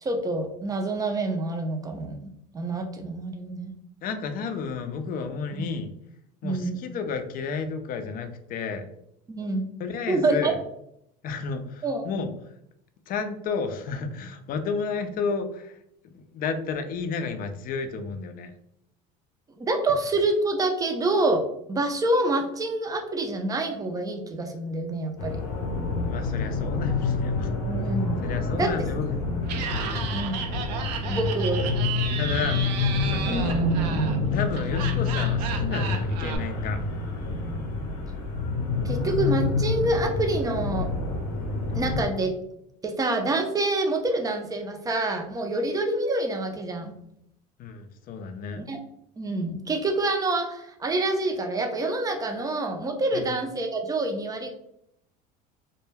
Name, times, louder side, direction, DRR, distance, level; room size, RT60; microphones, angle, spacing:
voice 1, 0.0-2.2 2.5-3.7 5.6-5.8 6.4-6.8 9.3-9.7 10.1-10.5 11.8-12.1 19.6-25.4 27.7-28.2 28.5-28.9 30.1-30.4 31.0-31.7 33.3-33.6 38.8-40.9 41.7-42.3 42.8-46.9 48.6-48.8 49.2-54.5, right 2 dB, 15° right, 4 dB, 0.5 m, -27 dB
voice 2, 4.0-5.9 6.4-8.9 9.8-10.5 11.2-12.3 13.1-15.8 16.0-18.5 26.0-27.5 28.2-29.1 29.7-30.2 32.2-32.6 33.1-33.6 34.3-36.8 47.6-48.6 53.1-53.3, left 5 dB, 45° left, 7 dB, 0.4 m, -32 dB
sound 1, 25.2-42.0, left 3 dB, 90° left, 0.6 m, -27 dB
Laughter, 29.4-36.4, right 7 dB, 90° right, 0.4 m, -34 dB
2.2 x 2.1 x 3.2 m, 0.75 s
supercardioid pair, 95°, 21 cm